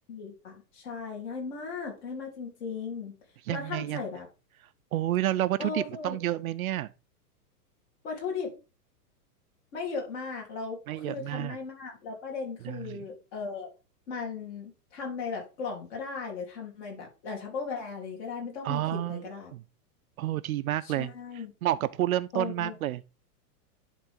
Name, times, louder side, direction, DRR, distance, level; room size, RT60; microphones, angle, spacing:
voice 1, 0.1-3.2 3.5-4.3 5.6-6.2 8.0-8.5 9.7-13.7 14.1-19.5 20.8-21.5 22.3-22.8, left 5 dB, 45° left, 3.7 m, -37 dB
voice 2, 3.5-4.0 4.9-6.9 10.9-11.6 12.6-13.0 18.6-19.2 19.5-19.6 20.2-21.1 21.6-23.0, right 14 dB, 60° right, 0.5 m, -29 dB
11.0 x 3.9 x 3.7 m
supercardioid pair, 165°, 48 cm